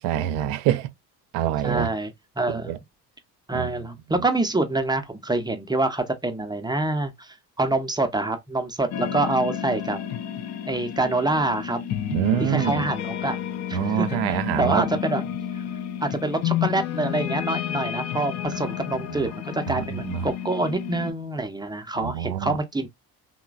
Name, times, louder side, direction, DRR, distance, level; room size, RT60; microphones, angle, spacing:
voice 1, 0.0-0.9 1.3-1.9 2.7-2.8 3.5-3.7 12.1-12.9 13.7-14.9 18.5-18.6 19.1-19.3 19.7-20.3 22.0-22.6, right 11 dB, 65° right, 0.6 m, -25 dB
voice 2, 1.6-2.7 3.5-10.0 10.7-11.8 12.4-13.4 13.7-15.2 15.5-15.6 16.0-22.9, right 2 dB, 10° right, 0.6 m, -26 dB
sound 1, 8.9-21.1, left 10 dB, 35° left, 0.4 m, -31 dB
3.1 x 2.0 x 2.3 m
hypercardioid pair, 55°, 48 cm